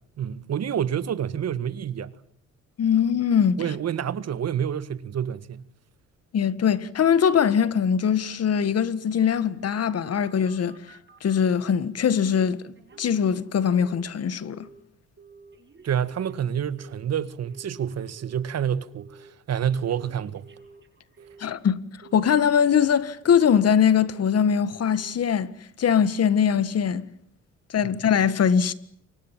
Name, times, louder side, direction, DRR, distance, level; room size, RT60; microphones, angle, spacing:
voice 1, 0.2-2.1 3.6-5.7 15.8-20.4 27.8-27.9, right 9 dB, 55° right, 1.7 m, -28 dB
voice 2, 2.8-3.6 6.3-10.8 11.2-14.7 21.4-21.8 22.1-25.5 25.8-27.0 27.7-28.7, left 7 dB, 55° left, 1.8 m, -22 dB
Telephone, 8.2-11.5 12.1-12.5 12.7-14.1 14.4-14.8 15.2-18.6 18.9-19.3 19.6-21.6 22.0-22.9 23.2-23.6 24.0-24.4 24.7-25.1 25.5-25.6, right 5 dB, 40° right, 7.5 m, -51 dB
28.5 x 24.5 x 7.5 m
cardioid pair, 90°, 30 cm